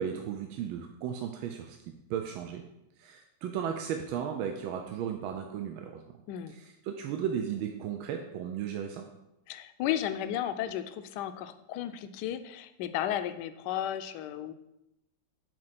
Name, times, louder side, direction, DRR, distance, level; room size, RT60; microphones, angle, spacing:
voice 1, 0.0-2.6 3.0-6.2 6.5-9.1, right 8 dB, 90° right, 4 dB, 1.5 m, -35 dB
voice 2, 9.5-14.5, left 11 dB, 70° left, 11 dB, 1.0 m, -34 dB
7.6 x 4.6 x 5.8 m, 0.89 s
omnidirectional pair, 2.2 m